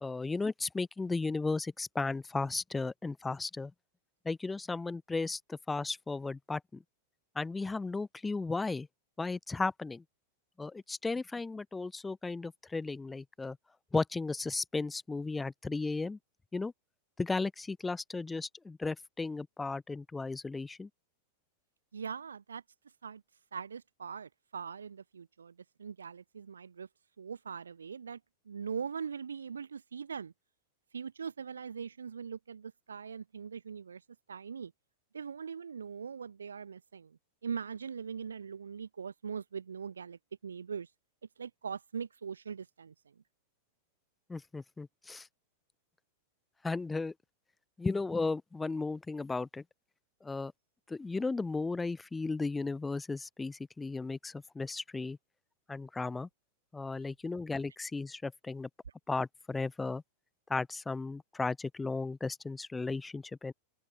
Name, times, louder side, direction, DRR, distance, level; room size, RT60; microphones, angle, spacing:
voice 1, 0.0-3.7 4.2-6.8 7.4-8.9 9.2-10.0 10.6-13.6 13.9-16.2 16.5-16.7 17.2-20.9 44.3-45.3 46.6-47.1 47.8-49.6 50.2-50.5 50.9-55.2 55.7-56.3 56.7-58.7 59.1-60.0 60.5-63.5, left 3 dB, 10° left, 0.5 m, -35 dB
voice 2, 21.9-22.6 23.0-23.2 23.5-25.5 25.8-26.9 27.2-28.2 28.5-30.3 30.9-34.0 34.3-34.7 35.1-40.9 41.4-42.9, right 6 dB, 70° right, 0.9 m, -41 dB
figure-of-eight pair, 90°, 0 cm